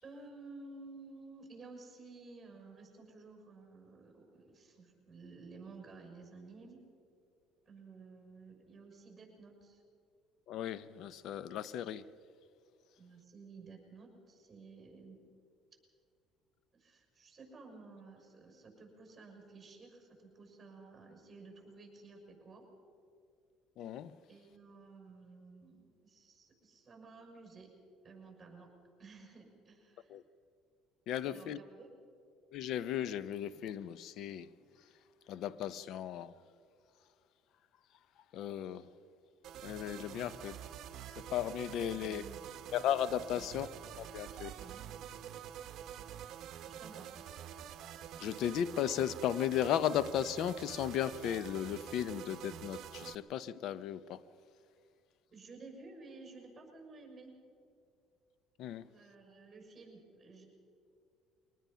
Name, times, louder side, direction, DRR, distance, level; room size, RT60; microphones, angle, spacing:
voice 1, 0.0-6.9 7.6-9.8 13.0-15.3 16.7-22.6 24.3-27.7 28.0-28.7 29.0-30.2 31.3-32.0 41.9-42.4 43.3-43.5 44.6-44.9 46.6-47.1 55.3-57.4 58.9-60.5, right 3 dB, 20° right, 6.3 m, -54 dB
voice 2, 10.5-12.1 23.8-24.2 30.1-30.2 31.1-31.6 32.5-34.5 35.3-36.3 38.3-38.9 39.6-40.6 41.2-42.2 42.7-43.7 44.0-44.5 48.2-54.2 58.6-58.9, left 10 dB, 65° left, 0.7 m, -35 dB
sound 1, 39.4-53.2, right 10 dB, 60° right, 1.0 m, -47 dB
24.0 x 19.0 x 5.7 m
cardioid pair, 105°, 0 cm